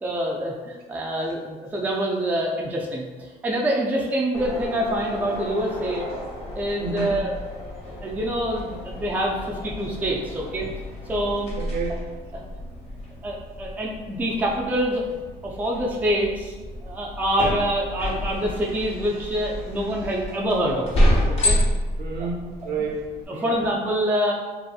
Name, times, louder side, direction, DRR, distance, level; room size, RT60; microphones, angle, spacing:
voice 1, 0.0-6.1 6.6-10.7 11.1-11.5 12.3-12.4 13.2-15.2 15.4-16.5 16.8-20.9 21.3-21.6 22.2-22.3 22.6-22.7 23.3-24.3, right 1 dB, 10° right, -2 dB, 0.4 m, -26 dB
sound 1, 4.3-23.2, equal, 35° left, 0.8 m, -29 dB
voice 2, 6.8-7.2 11.6-12.1 22.0-23.5, right 4 dB, 65° right, -1 dB, 0.6 m, -30 dB
2.6 x 2.6 x 2.3 m, 1.3 s
cardioid pair, 110°, 17 cm